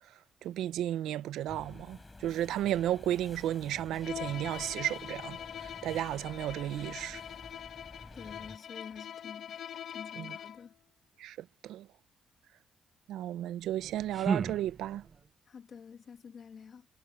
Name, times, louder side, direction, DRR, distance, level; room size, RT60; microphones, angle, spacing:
voice 1, 0.4-2.0 2.2-5.4 5.8-7.2 10.2-10.3 11.2-11.4 11.6-11.9 13.1-15.0, right 12 dB, 85° right, 0.6 m, -33 dB
sound 1, 1.5-8.6, left 2 dB, 20° left, 5.4 m, -51 dB
Bowed string instrument, 4.0-10.7, left 9 dB, 65° left, 1.4 m, -43 dB
voice 2, 8.1-9.6 9.9-10.7 15.5-16.9, left 6 dB, 50° left, 2.5 m, -48 dB
sound 2, 13.6-15.3, right 5 dB, 45° right, 0.7 m, -35 dB
cardioid pair, 90°, 0 cm